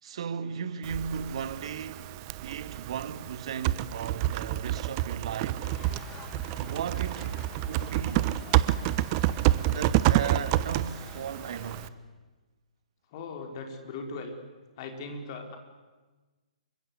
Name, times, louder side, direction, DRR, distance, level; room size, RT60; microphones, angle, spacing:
voice 1, 0.0-2.1 2.4-5.7 6.6-8.3 9.6-12.0, right 7 dB, 45° right, 1.9 m, -36 dB
Typing, 0.8-11.9, right 14 dB, 30° right, 1.0 m, -29 dB
sound 1, 5.6-11.9, left 7 dB, 20° left, 2.1 m, -49 dB
voice 2, 13.1-14.3 14.8-15.6, left 3 dB, 35° left, 4.9 m, -39 dB
28.5 x 24.5 x 8.3 m
figure-of-eight pair, 125°, 4 cm